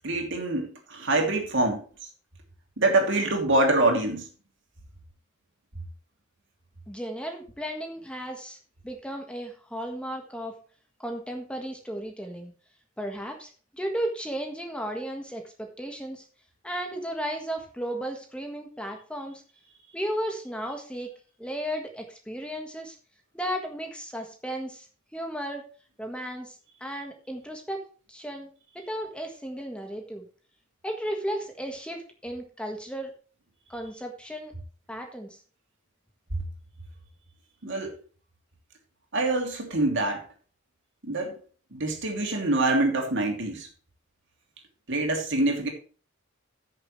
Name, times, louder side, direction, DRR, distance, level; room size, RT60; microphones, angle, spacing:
voice 1, 0.0-1.8 2.8-4.3 37.6-37.9 39.1-40.2 41.0-41.4 41.7-43.7 44.9-45.7, right 2 dB, 60° right, 2.8 m, -25 dB
voice 2, 6.9-8.6 8.8-10.5 11.0-12.5 13.0-16.3 16.6-19.4 19.9-21.1 21.4-22.9 23.3-24.9 25.1-25.7 26.0-30.3 30.8-33.1 33.7-34.5 34.9-35.4, equal, 5° left, 1.5 m, -34 dB
15.0 x 6.6 x 3.2 m
head